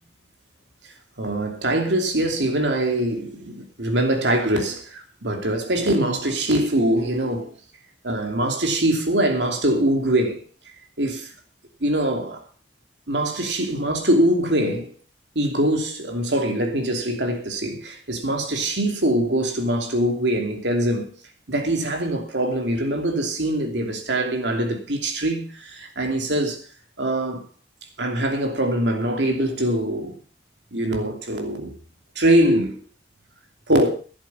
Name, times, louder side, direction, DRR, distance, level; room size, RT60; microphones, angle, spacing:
voice 1, 1.2-7.5 8.0-10.4 11.0-11.3 11.8-12.4 13.1-14.9 15.3-21.1 21.5-26.6 27.0-27.4 28.0-30.1 30.7-31.7 32.1-32.8 33.7-33.9, right 1 dB, 75° right, 2.9 m, -23 dB
12.5 x 11.0 x 5.6 m
head